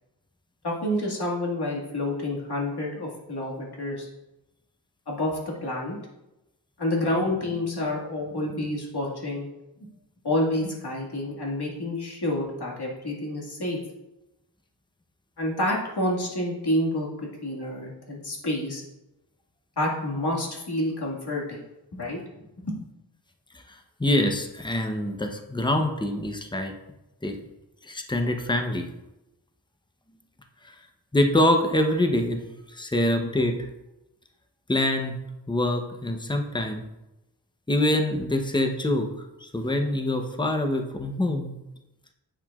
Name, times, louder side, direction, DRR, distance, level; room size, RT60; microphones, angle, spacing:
voice 1, 0.6-4.1 5.1-6.0 6.8-9.5 10.2-13.8 15.4-18.8 19.8-21.6 21.9-22.2 22.6-22.7, left 1 dB, 65° left, -3 dB, 2.0 m, -28 dB
voice 2, 23.5-26.7 27.2-27.4 27.8-28.9 30.6-30.7 31.1-32.4 32.7-33.6 34.7-35.2 35.5-36.9 37.7-39.1 39.4-41.6, left 1 dB, 10° left, 5 dB, 0.7 m, -25 dB
8.9 x 6.9 x 2.4 m, 0.95 s
wide cardioid pair, 65°, 41 cm